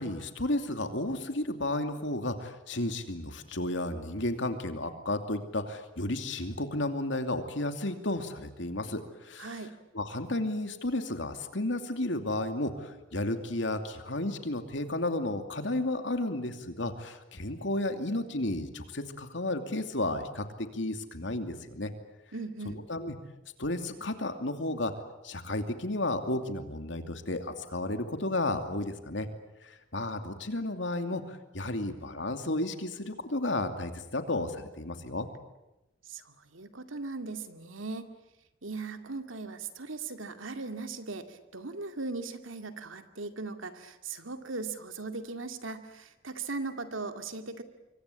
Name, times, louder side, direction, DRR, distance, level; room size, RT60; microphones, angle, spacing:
voice 1, 0.0-9.5 9.9-21.9 22.9-23.1 23.6-24.9 25.2-29.3 29.6-35.3, left 1 dB, 70° left, 7 dB, 2.7 m, -33 dB
voice 2, 9.4-9.7 22.3-22.8 36.0-38.1 38.6-47.6, right 3 dB, 85° right, 7 dB, 2.3 m, -38 dB
26.0 x 24.5 x 8.5 m, 0.94 s
head